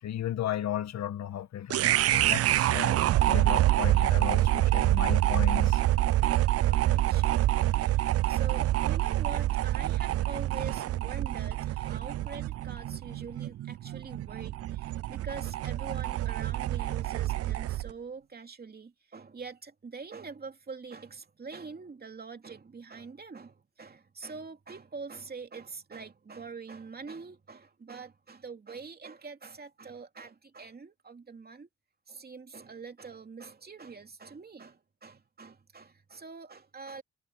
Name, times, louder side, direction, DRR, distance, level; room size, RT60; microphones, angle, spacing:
voice 1, 0.0-3.0 3.2-5.8, left 11 dB, 60° left, 1.5 m, -35 dB
sound 1, 1.7-17.9, right 14 dB, 55° right, 0.4 m, -26 dB
voice 2, 6.6-7.4 7.7-31.7 32.1-37.0, right 4 dB, 30° right, 2.8 m, -44 dB
cardioid pair, 90°, 30 cm